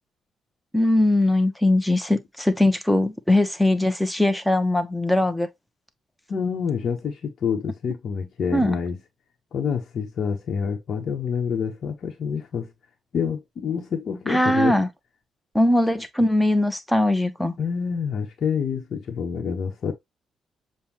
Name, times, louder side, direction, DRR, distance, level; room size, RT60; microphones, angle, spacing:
voice 1, 0.7-5.5 8.5-8.8 14.3-14.9 15.5-17.5, left 1 dB, 5° left, 1.2 m, -20 dB
voice 2, 6.3-9.0 9.5-12.7 13.1-14.8 17.6-19.9, left 6 dB, 60° left, 1.2 m, -27 dB
7.0 x 2.5 x 3.0 m
hypercardioid pair, 45°, 0 cm